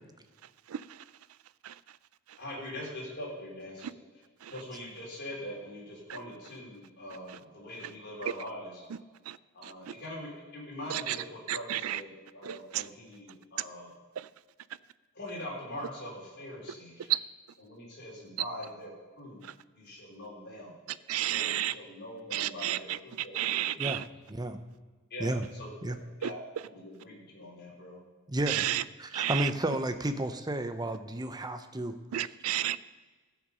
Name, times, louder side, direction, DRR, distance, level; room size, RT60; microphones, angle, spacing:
voice 1, 0.7-1.0 1.6-1.8 2.3-2.4 3.8-3.9 4.4-4.5 7.3-7.4 9.3-9.4 9.6-9.9 10.9-11.2 11.5-12.0 12.4-12.9 14.2-14.3 17.1-17.2 19.4-19.5 21.1-21.7 22.3-24.0 26.2-26.3 28.5-28.8 29.1-29.5 32.1-32.8, right 13 dB, 75° right, 0.4 m, -32 dB
voice 2, 2.4-3.9 4.5-8.8 9.5-13.9 15.1-17.1 17.6-19.4 19.7-20.8 21.3-24.0 25.1-26.4 26.7-28.0, left 1 dB, 50° left, 3.7 m, -43 dB
voice 3, 28.3-28.7 29.0-31.9, right 1 dB, 20° right, 0.7 m, -32 dB
16.0 x 6.0 x 5.4 m
head